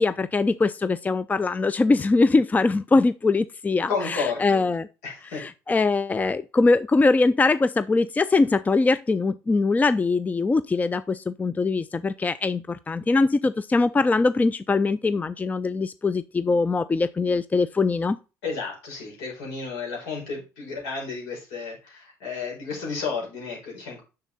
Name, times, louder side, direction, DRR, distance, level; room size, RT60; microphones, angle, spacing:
voice 1, 0.0-4.9 5.4-18.2, left 3 dB, 20° left, 0.5 m, -22 dB
voice 2, 3.9-4.6 5.0-5.5 18.4-24.0, left 4 dB, 75° left, 5.2 m, -32 dB
6.9 x 6.8 x 4.0 m
hypercardioid pair, 65°, 8 cm